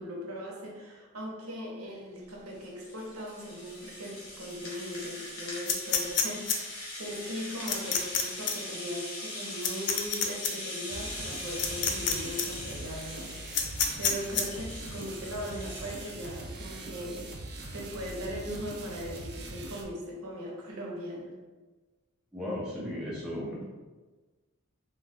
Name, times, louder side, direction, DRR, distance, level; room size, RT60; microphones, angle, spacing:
voice 1, 0.0-13.3 14.0-17.4 17.7-21.3, equal, 75° right, -2 dB, 0.7 m, -39 dB
Rattle (instrument), 2.3-16.5, left 1 dB, 70° left, 1.0 m, -41 dB
sound 1, 5.7-6.6 7.7-8.2 8.5-8.6 9.6-10.5 11.6-12.1 12.4-12.5 13.5-14.4, left 7 dB, 55° left, 0.3 m, -27 dB
sound 2, 10.9-19.8, right 2 dB, 50° right, 0.4 m, -42 dB
voice 2, 22.3-23.6, left 1 dB, 5° right, -8 dB, 0.6 m, -35 dB
2.4 x 2.3 x 3.3 m, 1.3 s
head